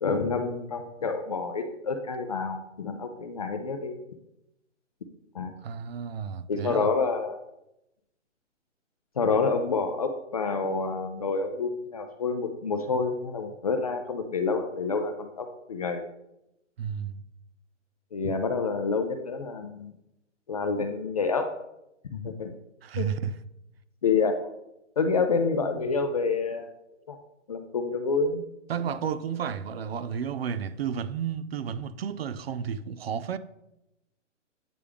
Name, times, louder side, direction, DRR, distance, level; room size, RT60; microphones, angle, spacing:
voice 1, 0.0-4.0 5.3-5.5 6.5-7.4 9.2-16.0 18.1-19.9 20.5-21.5 22.1-22.5 23.0-23.1 24.0-24.4 25.0-26.7 27.1-27.2 27.5-28.4, left 4 dB, 30° left, 0.4 m, -28 dB
voice 2, 5.6-6.9 16.8-17.2 22.8-23.3 28.7-33.4, right 7 dB, 55° right, 0.5 m, -32 dB
8.6 x 3.3 x 3.4 m
hypercardioid pair, 140°, 38 cm